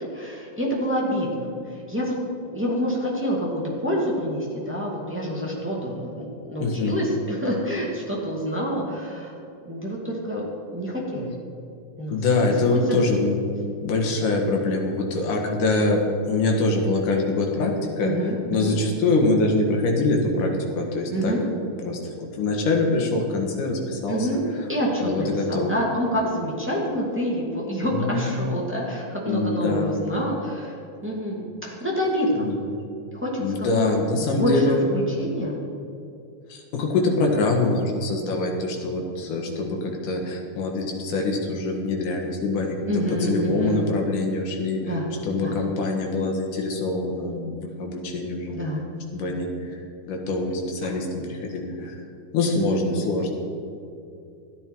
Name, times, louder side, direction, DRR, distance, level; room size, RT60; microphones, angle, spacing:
voice 1, 0.0-2.1 2.4-9.3 9.6-10.4 10.7-11.3 12.0-12.2 12.7-13.0 18.0-18.8 21.1-21.4 24.1-24.4 24.7-32.5 33.1-35.6 42.9-43.9 44.8-45.1 45.4-45.5 48.5-48.8 50.8-50.9 52.6-53.0, equal, 5° right, -4 dB, 1.5 m, -27 dB
voice 2, 6.6-7.0 12.1-13.4 13.8-18.1 18.5-21.3 21.9-24.3 25.0-25.7 27.8-28.5 29.3-30.0 32.4-32.6 33.4-34.9 36.5-44.9 45.2-48.6 49.1-49.8 50.1-52.0 52.3-53.3, left 2 dB, 70° left, 1 dB, 3.1 m, -24 dB
14.0 x 10.0 x 4.6 m, 2.6 s
omnidirectional pair, 3.8 m